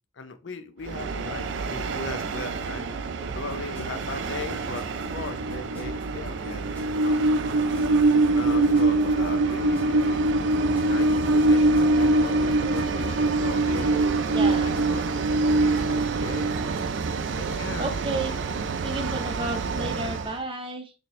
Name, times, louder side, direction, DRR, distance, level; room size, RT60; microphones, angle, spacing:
voice 1, 0.2-2.9 3.3-7.7 8.3-10.3 10.8-14.0 14.4-15.0 15.7-16.5 17.4-17.9, left 4 dB, 70° left, 8 dB, 0.5 m, -38 dB
Train, 0.9-20.3, right 2 dB, 65° right, 0.4 m, -24 dB
sound 1, 3.3-17.6, equal, 10° left, 0.9 m, -47 dB
voice 2, 14.3-14.7 17.8-18.3 18.8-20.9, right 2 dB, 25° right, 5 dB, 0.6 m, -32 dB
4.2 x 2.7 x 3.1 m, 0.31 s
head